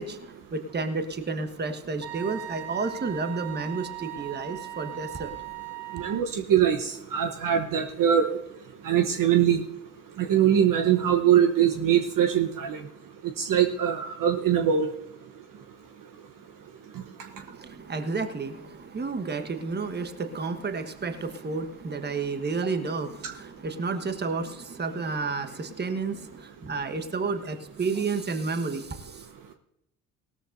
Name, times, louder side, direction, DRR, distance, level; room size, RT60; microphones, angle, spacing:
voice 1, 0.0-5.3 17.4-29.2, right 4 dB, 20° right, 8 dB, 1.4 m, -31 dB
Wind instrument woodwind instrument, 2.0-6.3, right 14 dB, 60° right, 1.4 m, -39 dB
voice 2, 5.9-8.4 8.8-9.6 10.2-12.8 13.4-14.9, right 9 dB, 45° right, 5 dB, 1.1 m, -22 dB
18.0 x 13.5 x 2.7 m, 0.82 s
hypercardioid pair, 70°, 45 cm